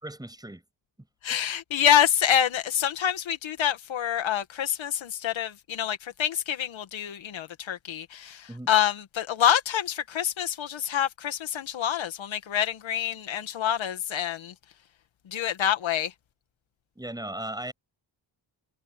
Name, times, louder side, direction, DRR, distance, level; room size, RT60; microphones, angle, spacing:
voice 1, 0.0-0.6 8.5-8.7 16.9-17.7, right 1 dB, 10° right, 6.6 m, -37 dB
voice 2, 1.2-14.5 15.3-16.1, left 10 dB, 75° left, 2.2 m, -26 dB
wide cardioid pair, 150°, 47 cm